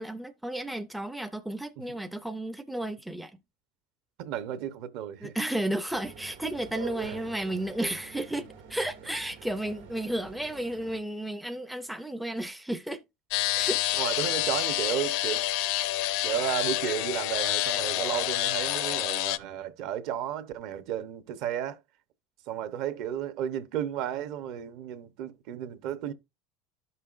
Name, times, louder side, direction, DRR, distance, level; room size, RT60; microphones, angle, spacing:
voice 1, 0.0-3.4 5.2-13.0 13.5-13.8, right 1 dB, ahead, 0.4 m, -33 dB
voice 2, 4.2-5.3 7.0-7.2 14.0-15.5 16.2-21.8 22.5-26.1, right 10 dB, 55° right, 0.8 m, -33 dB
sound 1, 5.9-11.0, right 8 dB, 90° right, 1.8 m, -45 dB
sound 2, 13.3-19.4, left 16 dB, 60° left, 0.5 m, -28 dB
12.5 x 5.5 x 2.4 m
supercardioid pair, 155°, 0 cm